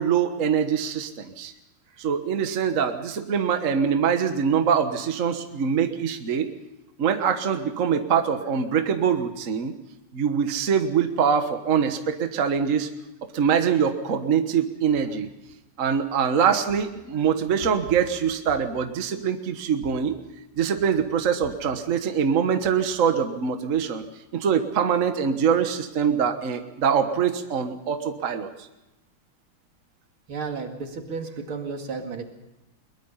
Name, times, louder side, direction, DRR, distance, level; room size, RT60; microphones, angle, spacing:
voice 1, 0.0-1.5 2.0-6.5 7.0-9.7 10.1-12.9 13.3-15.3 15.8-20.2 20.6-24.0 24.3-28.5, right 7 dB, 40° right, 7 dB, 1.5 m, -23 dB
voice 2, 30.3-32.2, right 4 dB, 75° right, 4 dB, 3.0 m, -33 dB
22.0 x 21.0 x 5.7 m, 0.95 s
omnidirectional pair, 2.3 m